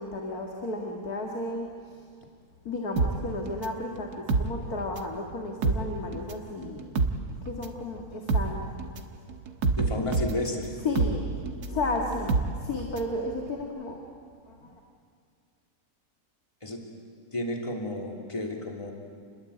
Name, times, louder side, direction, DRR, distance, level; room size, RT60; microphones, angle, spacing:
voice 1, 0.0-2.0 2.6-6.9 7.4-8.7 9.0-9.1 10.8-11.2 11.7-14.0 14.5-14.7, left 2 dB, 75° left, 1 dB, 2.6 m, -33 dB
sound 1, 3.0-5.2 5.5-13.2 13.5-13.6, right 3 dB, 85° right, 2.0 m, -28 dB
voice 2, 9.8-10.7 16.6-16.8 17.3-18.9, left 1 dB, 20° left, 1 dB, 3.0 m, -32 dB
29.5 x 21.5 x 8.6 m, 2.2 s
omnidirectional pair, 1.6 m